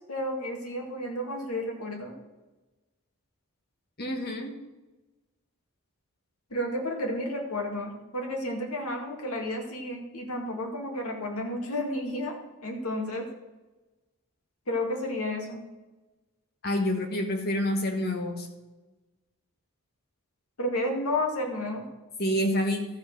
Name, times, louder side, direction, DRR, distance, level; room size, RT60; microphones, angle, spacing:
voice 1, 0.1-2.1 6.5-12.4 12.6-13.3 14.7-15.6 20.6-21.8, left 1 dB, 85° left, 1 dB, 2.2 m, -31 dB
voice 2, 4.0-4.5 16.6-18.5 22.2-22.9, left 1 dB, 45° left, 3 dB, 1.5 m, -27 dB
13.0 x 5.0 x 6.7 m, 1.1 s
head